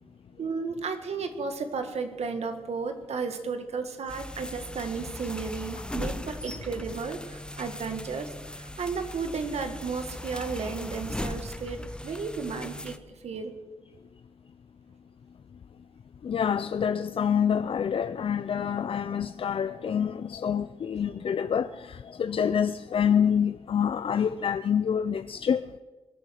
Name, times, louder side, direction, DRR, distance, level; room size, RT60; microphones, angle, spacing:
voice 1, 0.4-13.0 13.2-13.5, right 5 dB, 85° right, 1.8 m, -33 dB
sound 1, 4.1-13.0, left 1 dB, 10° left, 0.9 m, -38 dB
voice 2, 16.2-25.6, left 8 dB, 60° left, 0.5 m, -27 dB
22.5 x 9.6 x 6.5 m
wide cardioid pair, 105°, 11 cm